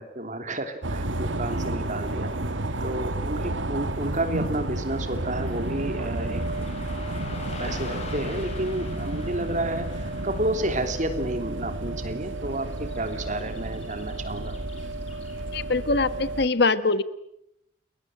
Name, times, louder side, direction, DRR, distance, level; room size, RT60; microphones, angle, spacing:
voice 1, 0.0-2.3 2.8-6.7 7.0-14.6, right 1 dB, 40° right, 7 dB, 3.2 m, -31 dB
sound 1, 0.8-16.5, right 2 dB, 75° right, 1.8 m, -31 dB
Car passing by / Traffic noise roadway noise, 1.5-15.8, left 3 dB, 35° left, 5.9 m, -46 dB
voice 2, 15.5-17.0, left 3 dB, 55° left, 13 dB, 1.4 m, -23 dB
30.0 x 21.5 x 9.2 m, 0.80 s
head